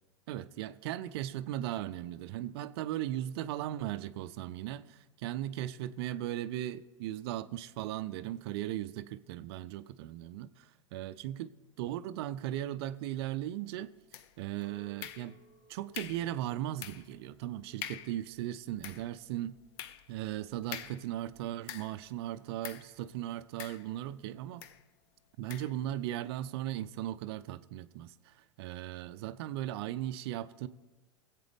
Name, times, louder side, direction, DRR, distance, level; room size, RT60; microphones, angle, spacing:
voice 1, 0.3-13.9 14.4-15.4 15.7-19.6 20.1-24.6 25.4-30.7, right 13 dB, 55° right, 0.5 m, -37 dB
sound 1, 14.1-14.5 15.0-15.6 15.9-16.3 16.8-17.2 17.5-17.6 17.8-18.2 18.6-22.1 22.6-23.0 23.6-24.2 24.6-24.8 25.5-25.8, left 10 dB, 50° left, 0.7 m, -45 dB
Chink clink, 14.6-19.9, right 3 dB, 70° left, 2.6 m, -64 dB
22.0 x 8.3 x 3.5 m
figure-of-eight pair, 90°, 16 cm